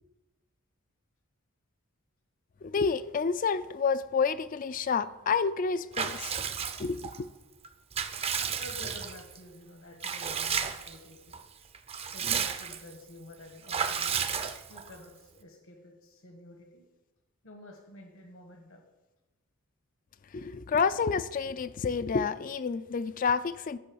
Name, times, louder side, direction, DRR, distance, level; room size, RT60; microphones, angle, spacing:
voice 1, 2.6-6.4 6.8-7.3 20.3-23.8, left 5 dB, 40° left, 0.3 m, -29 dB
Water / Bathtub (filling or washing) / Liquid, 5.9-7.2 7.6-9.4 10.0-11.0 11.3-11.4 11.7-12.9 13.7-15.0, right 6 dB, 25° right, 0.5 m, -32 dB
voice 2, 8.6-11.4 12.1-14.4 14.7-16.8 17.4-18.8, left 1 dB, 70° left, 1.3 m, -50 dB
11.5 x 5.5 x 6.1 m
head